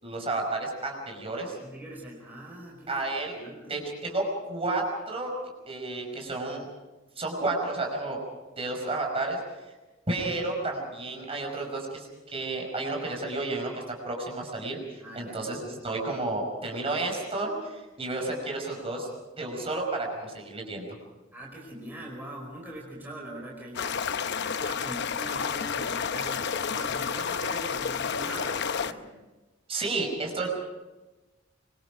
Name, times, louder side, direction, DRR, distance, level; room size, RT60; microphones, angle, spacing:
voice 1, 0.0-1.6 2.9-3.3 3.7-5.3 5.7-6.7 7.2-8.2 8.6-9.4 10.1-19.1 19.4-20.9 29.7-30.5, right 2 dB, 30° right, 1 dB, 5.4 m, -31 dB
voice 2, 1.6-3.0 3.4-3.8 15.0-15.4 21.3-24.1 24.5-29.1, right 1 dB, 10° right, -2 dB, 4.9 m, -42 dB
sound 1, 23.8-28.9, left 6 dB, 60° left, 0.8 m, -30 dB
25.0 x 24.0 x 5.0 m, 1.1 s
head